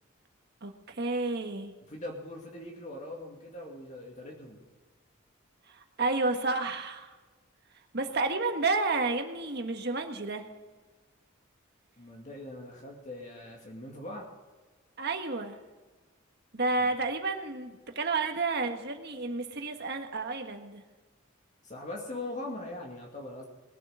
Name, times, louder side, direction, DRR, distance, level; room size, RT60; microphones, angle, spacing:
voice 1, 0.6-1.7 5.7-7.1 7.9-10.4 15.0-15.6 16.5-20.8, right 3 dB, 50° right, 5 dB, 1.6 m, -31 dB
voice 2, 1.9-4.6 12.0-14.3 16.8-16.9 21.6-23.5, left 1 dB, 35° left, 0 dB, 2.3 m, -41 dB
20.5 x 7.7 x 6.3 m, 1.3 s
head